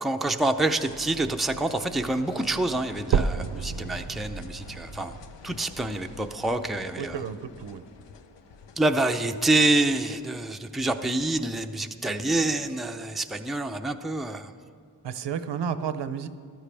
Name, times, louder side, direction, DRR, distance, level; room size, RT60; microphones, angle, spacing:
voice 1, 0.0-5.2 5.4-7.2 8.8-14.5, right 2 dB, ahead, 5 dB, 0.5 m, -27 dB
sound 1, 0.6-11.8, left 5 dB, 85° left, 0.8 m, -47 dB
sound 2, 3.1-7.1 7.7-7.8 8.3-8.4 8.8-8.9 9.7-9.8, right 6 dB, 50° right, 0.5 m, -31 dB
voice 2, 7.0-7.8 15.0-16.3, right 7 dB, 80° right, 11 dB, 0.7 m, -32 dB
14.5 x 12.5 x 3.4 m, 2.3 s
wide cardioid pair, 85°, 42 cm